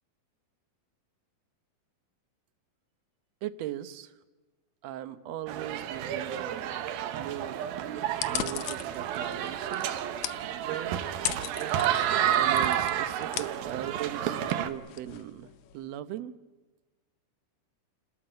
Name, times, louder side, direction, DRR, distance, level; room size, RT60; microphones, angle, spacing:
voice 1, 3.4-4.1 4.8-6.9 7.1-7.6 8.3-10.1 10.6-11.0 12.3-16.3, right 12 dB, 70° right, 13 dB, 1.7 m, -39 dB
sound 1, 5.5-14.7, right 10 dB, 85° right, 3.0 m, -30 dB
sound 2, 8.1-15.8, left 13 dB, 75° left, 1.7 m, -39 dB
29.5 x 13.5 x 9.1 m, 1.2 s
omnidirectional pair, 4.1 m